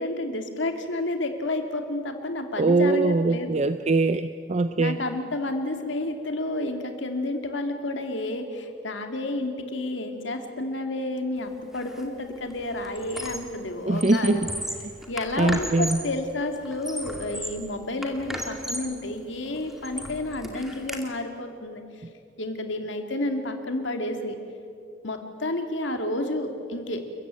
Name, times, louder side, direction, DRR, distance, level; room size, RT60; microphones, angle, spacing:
voice 1, 0.0-3.6 4.8-14.4 15.1-21.8 22.4-24.4 25.0-27.0, left 2 dB, 65° left, 5 dB, 2.4 m, -30 dB
voice 2, 2.6-5.0 13.8-14.4 15.4-16.0, right 2 dB, 35° right, 10 dB, 0.6 m, -22 dB
Squeak, 11.7-12.0 12.4-13.6 13.9-16.1 16.6-17.7 18.0-19.0 19.5-21.0, equal, ahead, 2.1 m, -35 dB
29.5 x 15.0 x 9.0 m, 2.4 s
head